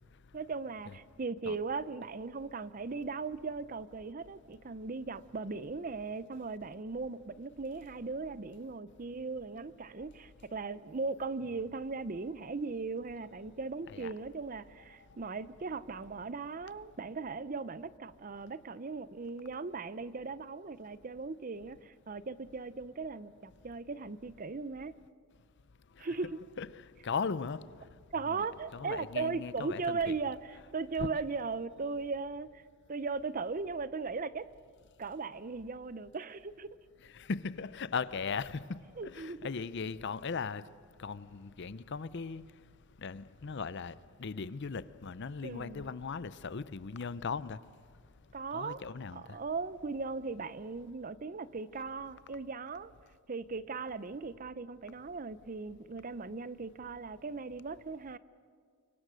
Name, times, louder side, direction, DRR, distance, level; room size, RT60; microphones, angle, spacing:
voice 1, 0.3-24.9 26.0-26.4 28.1-30.4 30.7-32.6 32.9-34.5 35.0-36.7 39.0-39.4 45.4-45.9 48.3-48.8 49.1-52.9 53.3-58.2, right 4 dB, 40° right, 0.6 m, -38 dB
Stream, 10.0-10.1 11.2-11.3 12.4-12.5 13.6-13.7 14.8-15.2, left 7 dB, 85° left, 2.5 m, -62 dB
voice 2, 26.6-27.7 28.3-28.4 28.7-30.2 31.0-31.1 37.1-40.6 41.0-42.5 43.0-43.9 44.2-47.6 48.5-49.2, left 5 dB, 55° left, 0.6 m, -38 dB
25.5 x 23.0 x 6.3 m
head